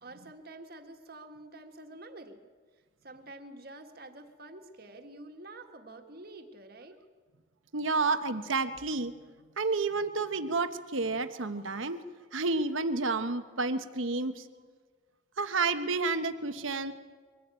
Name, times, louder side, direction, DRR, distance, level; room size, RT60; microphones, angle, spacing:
voice 1, 0.0-2.4 3.0-7.0 14.4-14.7, right 2 dB, 50° right, 5 dB, 1.7 m, -48 dB
voice 2, 7.7-9.1 9.6-12.0 12.3-14.5 15.4-16.9, right 3 dB, 80° right, 9 dB, 1.2 m, -30 dB
23.5 x 15.5 x 8.9 m, 1.5 s
head